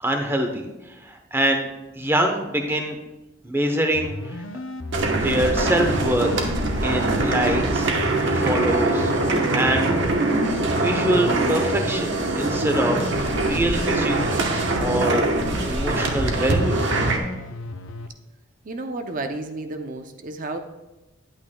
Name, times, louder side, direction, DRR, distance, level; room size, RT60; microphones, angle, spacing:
voice 1, 0.0-0.7 1.0-1.7 1.9-3.0 3.4-4.4 5.2-6.3 6.8-7.9 8.3-9.1 9.5-9.9 10.7-13.1 13.4-15.2 15.7-16.9, right 1 dB, 10° right, 4 dB, 0.8 m, -24 dB
sound 1, 3.9-18.1, left 2 dB, 70° left, 0.5 m, -35 dB
sound 2, 4.9-17.2, right 2 dB, 60° right, 1.0 m, -23 dB
voice 2, 18.6-20.6, right 2 dB, 40° right, 6 dB, 0.5 m, -31 dB
10.5 x 8.8 x 2.2 m, 0.99 s
head